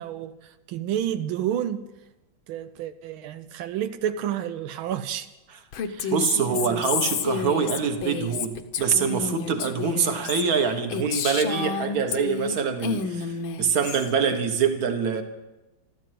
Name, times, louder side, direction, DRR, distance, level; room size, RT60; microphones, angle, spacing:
voice 1, 0.0-1.9 2.5-5.3 5.9-6.1 6.5-6.6, right 10 dB, 85° right, 1.5 m, -30 dB
Female speech woman speaking, 5.7-12.6 12.8-14.1, left 6 dB, 80° left, 1.7 m, -30 dB
voice 2, 6.1-15.2, right 6 dB, 50° right, 1.8 m, -25 dB
14.0 x 13.5 x 7.7 m
omnidirectional pair, 2.2 m